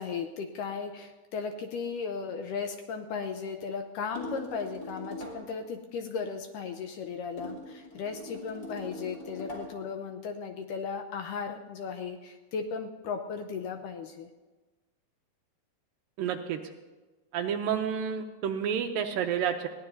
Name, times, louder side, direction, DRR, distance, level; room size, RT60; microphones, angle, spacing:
voice 1, 0.0-14.3, left 5 dB, 80° left, 6 dB, 2.0 m, -36 dB
sound 1, 4.2-5.5 7.4-9.8, left 1 dB, 20° left, 3.8 m, -41 dB
voice 2, 16.2-16.6 17.3-19.7, right 8 dB, 80° right, 5 dB, 2.2 m, -30 dB
21.0 x 17.0 x 2.7 m, 1.2 s
omnidirectional pair, 4.4 m